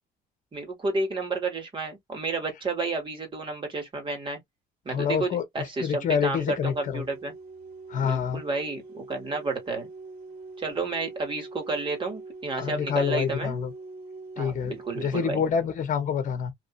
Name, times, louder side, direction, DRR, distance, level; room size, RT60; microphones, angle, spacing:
voice 1, 0.5-4.4 4.8-7.3 8.0-9.9 10.6-13.6 14.4-15.4, right 3 dB, 30° right, 1.9 m, -31 dB
voice 2, 4.9-5.4 5.8-7.0 7.9-8.4 12.5-13.7 14.4-16.5, left 7 dB, 50° left, 1.0 m, -27 dB
sound 1, 6.2-15.3, right 3 dB, 60° right, 1.5 m, -43 dB
3.1 x 2.7 x 2.5 m
cardioid pair, 110°, 17 cm